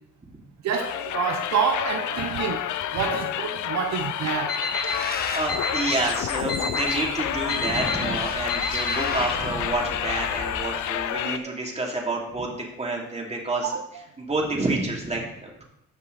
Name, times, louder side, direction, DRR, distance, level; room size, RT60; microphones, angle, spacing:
voice 1, 0.6-2.6 2.9-5.4 8.9-9.0 11.1-11.2 13.6-13.8, right 7 dB, 65° right, 6 dB, 0.8 m, -28 dB
sound 1, 0.7-11.4, left 11 dB, 75° left, 0.6 m, -29 dB
Alarm, 4.5-4.9 5.5-5.9 6.5-6.9 7.5-7.9 8.5-8.9, left 3 dB, 50° left, 3.4 m, -28 dB
Bird, 4.8-11.2, left 3 dB, 30° left, 1.3 m, -36 dB
voice 2, 5.0-13.8 14.2-15.6, right 2 dB, 20° right, -1 dB, 2.8 m, -29 dB
14.0 x 5.6 x 4.0 m, 0.79 s
cardioid pair, 90°, 30 cm